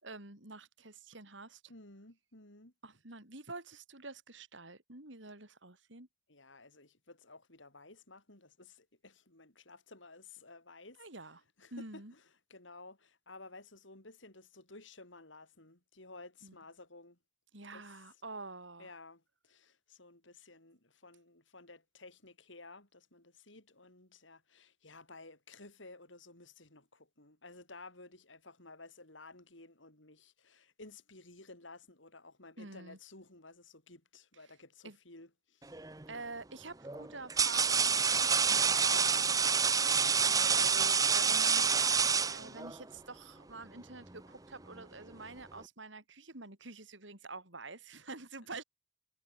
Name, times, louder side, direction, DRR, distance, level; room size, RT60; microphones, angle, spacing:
voice 1, 0.0-1.6 2.8-6.1 11.0-11.4 11.7-12.1 16.4-16.5 17.5-18.9 32.6-33.0 34.8-35.0 36.1-38.2 38.5-40.1 40.6-48.6, right 3 dB, 75° right, 4.8 m, -48 dB
voice 2, 1.7-2.7 6.3-11.1 11.6-12.2 12.5-17.2 17.7-17.9 18.8-35.8 40.3-40.7, left 3 dB, 80° left, 6.0 m, -54 dB
sound 1, 35.7-36.0 36.8-42.8, right 6 dB, 20° right, 0.8 m, -28 dB
head